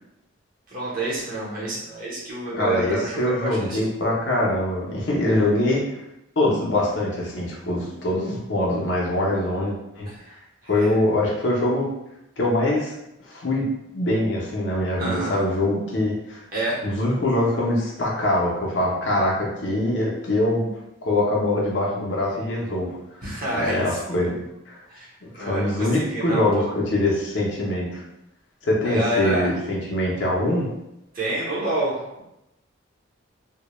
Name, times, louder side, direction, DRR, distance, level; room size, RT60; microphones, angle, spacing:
voice 1, 0.7-3.8 10.1-10.4 10.6-10.9 15.0-15.4 16.5-16.8 23.2-24.4 24.9-26.7 28.8-29.5 31.1-32.2, right 1 dB, 45° right, -6 dB, 0.8 m, -28 dB
voice 2, 2.5-5.8 6.4-10.1 10.7-11.9 12.4-12.9 13.2-13.7 13.9-16.4 16.8-20.7 21.0-23.0 23.5-24.4 24.7-24.8 25.3-28.0 28.6-30.7, left 1 dB, 60° left, -4 dB, 0.5 m, -23 dB
2.1 x 2.1 x 2.9 m, 0.87 s
head